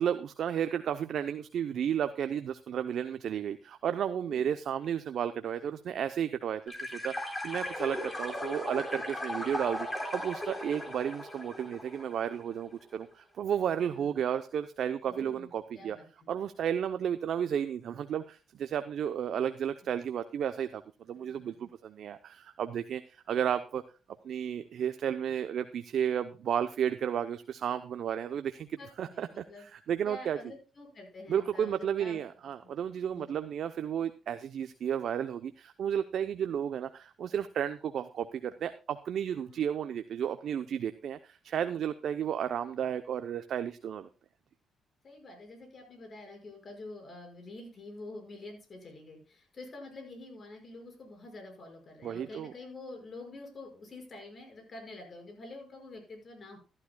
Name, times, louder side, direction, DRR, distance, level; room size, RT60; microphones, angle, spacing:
voice 1, 0.0-16.0 16.3-20.8 21.1-23.8 24.2-28.7 29.0-30.4 31.3-44.1 52.0-52.5, right 9 dB, 65° right, 10 dB, 0.6 m, -33 dB
voice 2, 4.2-4.5 13.9-14.2 15.0-15.5 15.7-16.3 21.2-21.7 28.8-29.7 30.0-32.2 33.1-33.4 39.4-39.6 45.0-56.6, left 2 dB, 45° left, 4 dB, 5.5 m, -47 dB
sound 1, 6.7-12.4, left 1 dB, 20° left, 3.6 m, -37 dB
14.5 x 12.0 x 2.2 m, 0.32 s
cardioid pair, 90°, 0 cm